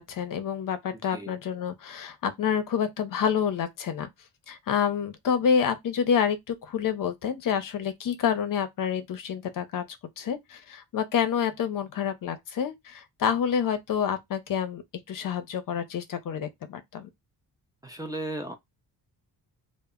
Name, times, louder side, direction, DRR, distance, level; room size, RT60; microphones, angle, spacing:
voice 1, 0.0-4.1 4.5-9.8 10.2-14.8 15.1-17.1, left 7 dB, 50° left, 0.6 m, -28 dB
voice 2, 17.8-18.5, right 1 dB, 10° right, 0.3 m, -35 dB
2.0 x 2.0 x 3.5 m
cardioid pair, 125°, 41 cm